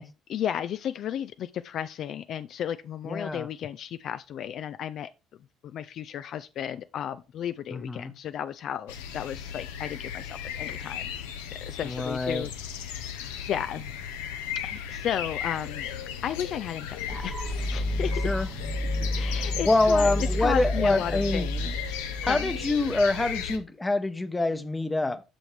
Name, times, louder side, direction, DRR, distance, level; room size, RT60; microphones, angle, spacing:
voice 1, 0.0-5.1 5.6-11.1 11.5-14.0 14.6-15.9 16.2-18.3 19.0-22.5, left 9 dB, 55° left, 0.3 m, -34 dB
voice 2, 3.0-3.5 7.7-8.1 11.8-12.5 18.2-18.5 19.6-21.5 22.2-25.2, left 2 dB, 15° left, 0.9 m, -25 dB
sound 1, 8.9-23.6, left 8 dB, 80° left, 0.8 m, -36 dB
sound 2, 17.1-23.0, equal, 15° right, 0.7 m, -31 dB
7.6 x 6.3 x 3.2 m
hypercardioid pair, 60°, 0 cm